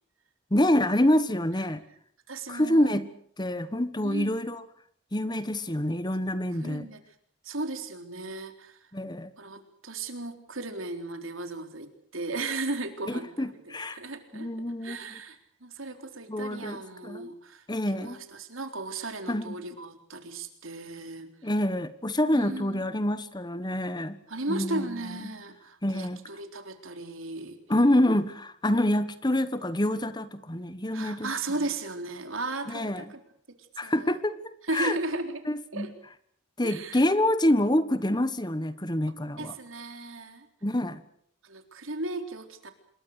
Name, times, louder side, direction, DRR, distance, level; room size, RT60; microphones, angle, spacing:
voice 1, 0.5-1.8 2.5-3.1 3.4-4.6 5.1-6.9 8.9-9.3 13.1-14.0 14.3-15.2 16.3-17.3 17.7-18.2 19.3-19.6 21.4-24.2 24.5-24.9 25.8-26.2 27.7-31.3 32.7-33.1 33.8-35.0 35.4-35.9 36.6-39.6 40.6-41.0, left 1 dB, 20° left, 13 dB, 1.3 m, -27 dB
voice 2, 2.3-3.0 4.0-4.4 6.6-7.0 7.4-8.8 9.4-14.5 14.8-17.6 17.9-21.3 22.3-22.8 24.3-27.6 30.9-33.2 33.8-34.2 34.7-35.4 35.7-35.9 36.6-37.0 39.4-40.5 41.4-42.7, right 2 dB, 80° right, 7 dB, 3.9 m, -36 dB
27.0 x 22.0 x 6.7 m, 0.64 s
head